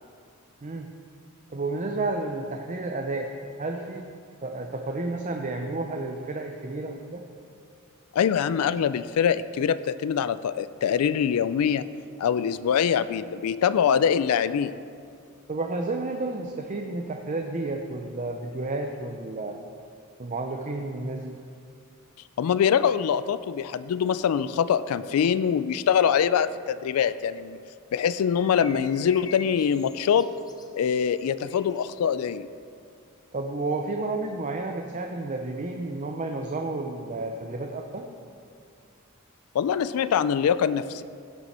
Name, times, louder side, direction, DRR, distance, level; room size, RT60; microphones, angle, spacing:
voice 1, 0.6-0.9 1.5-3.3 3.6-4.1 4.4-7.2 15.5-19.6 20.2-21.3 33.3-38.1, right 2 dB, 35° right, 3 dB, 0.6 m, -31 dB
voice 2, 8.1-11.9 12.2-14.8 22.4-27.6 27.9-30.3 30.7-32.5 39.5-41.0, left 8 dB, 80° left, 15 dB, 0.3 m, -24 dB
sound 1, 28.3-31.9, left 4 dB, 20° left, 0.5 m, -46 dB
16.5 x 5.9 x 4.2 m, 2.3 s
head